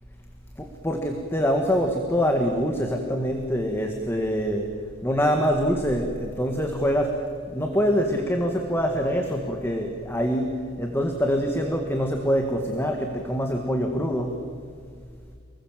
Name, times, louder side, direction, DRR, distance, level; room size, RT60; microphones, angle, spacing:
voice 1, 0.8-4.7 5.0-7.1 7.5-10.5 10.8-14.3, equal, 10° left, 3 dB, 1.8 m, -24 dB
29.0 x 21.0 x 7.5 m, 2.2 s
head